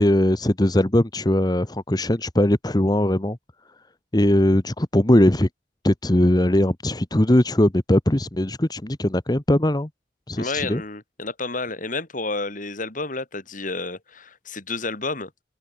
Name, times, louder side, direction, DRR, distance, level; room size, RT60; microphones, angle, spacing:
voice 1, 0.0-3.4 4.1-5.5 5.8-9.9 10.3-10.8, left 1 dB, 20° left, 1.2 m, -20 dB
voice 2, 10.3-15.4, left 3 dB, 45° left, 3.7 m, -30 dB
open air
head